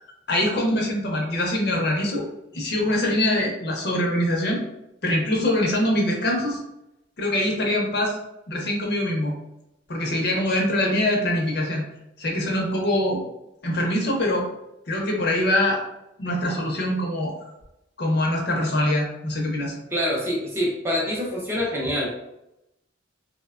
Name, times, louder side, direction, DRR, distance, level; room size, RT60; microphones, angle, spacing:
voice 1, 0.3-2.2 2.5-4.6 5.0-6.6 7.2-8.2 8.5-9.3 9.9-11.8 12.2-13.2 13.6-14.4 14.9-15.8 16.2-17.5 18.0-19.7, left 1 dB, 55° left, 0 dB, 0.6 m, -23 dB
voice 2, 19.9-22.1, equal, 10° right, -3 dB, 0.5 m, -25 dB
3.1 x 2.1 x 2.3 m, 0.87 s
head